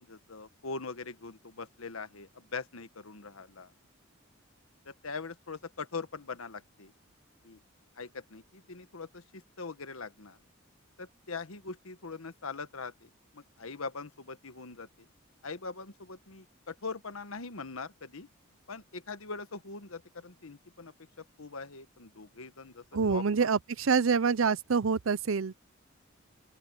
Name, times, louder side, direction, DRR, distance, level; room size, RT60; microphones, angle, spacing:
voice 1, 0.0-3.7 4.8-6.9 7.4-7.6 8.0-10.4 11.0-14.9 15.4-18.3 18.7-23.5, left 4 dB, 90° left, 1.3 m, -42 dB
voice 2, 22.9-25.6, right 5 dB, 75° right, 0.6 m, -26 dB
open air
head